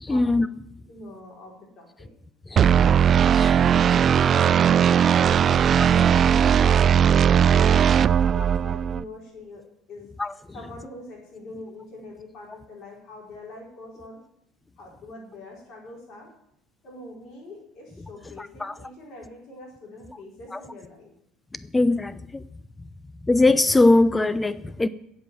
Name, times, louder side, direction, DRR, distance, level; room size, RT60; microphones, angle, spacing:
voice 1, 0.0-0.5 3.3-3.6 10.2-10.3 18.4-18.7 21.7-22.4 23.3-24.9, left 2 dB, 15° left, 0.7 m, -20 dB
voice 2, 0.9-2.1 2.5-2.8 4.2-4.9 5.4-10.1 10.5-14.2 14.8-16.3 16.8-21.1, left 2 dB, 45° left, 4.6 m, -43 dB
sound 1, 2.6-9.0, right 8 dB, 40° right, 0.4 m, -18 dB
16.0 x 5.5 x 7.8 m
figure-of-eight pair, 60°, 0 cm